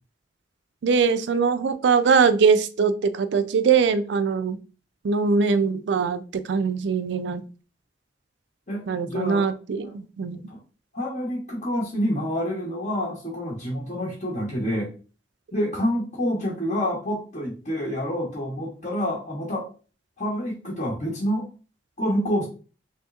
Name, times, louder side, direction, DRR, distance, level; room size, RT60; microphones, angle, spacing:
voice 1, 0.8-4.6 5.0-7.5 8.9-10.4, right 5 dB, 75° right, 12 dB, 0.4 m, -22 dB
voice 2, 8.7-9.5 9.8-10.0 10.3-10.6 10.9-14.9 15.5-19.7 20.2-21.5 22.0-22.5, equal, 40° left, -4 dB, 0.8 m, -28 dB
3.1 x 2.8 x 3.4 m, 0.36 s
head